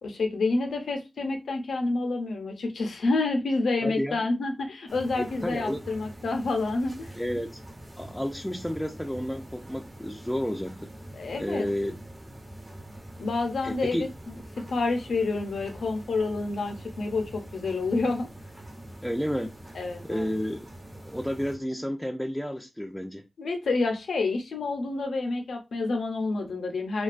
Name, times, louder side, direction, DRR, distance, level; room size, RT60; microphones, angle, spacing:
voice 1, 0.0-7.1 11.1-11.7 13.2-18.3 19.7-20.3 23.4-27.0, left 3 dB, 90° left, 0.5 m, -28 dB
voice 2, 3.8-4.2 5.2-5.8 7.2-7.6 8.0-10.9 11.4-11.9 13.6-14.1 19.0-19.5 20.0-20.7 21.1-23.3, equal, 5° left, 0.3 m, -31 dB
sound 1, 4.9-21.5, right 1 dB, 35° right, 0.8 m, -44 dB
2.3 x 2.2 x 2.4 m
cardioid pair, 45°, 0 cm